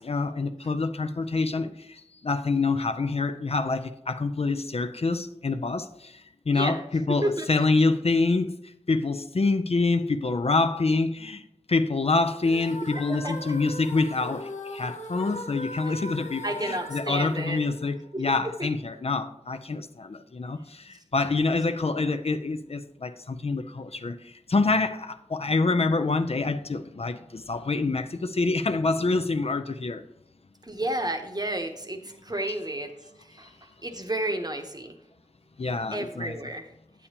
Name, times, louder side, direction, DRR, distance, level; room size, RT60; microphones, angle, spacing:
voice 1, 0.0-8.5 8.9-11.4 11.7-30.0 35.6-36.4, left 3 dB, 55° left, 0.4 m, -26 dB
voice 2, 7.1-7.6 12.9-13.5 15.8-16.0 16.4-17.7 18.1-18.2 18.6-18.7 30.6-32.9 33.2-35.0 35.9-36.7, right 1 dB, 30° right, 0.9 m, -32 dB
sound 1, 12.4-18.5, left 2 dB, 70° left, 0.8 m, -39 dB
8.6 x 8.3 x 2.9 m
wide cardioid pair, 50°, 13 cm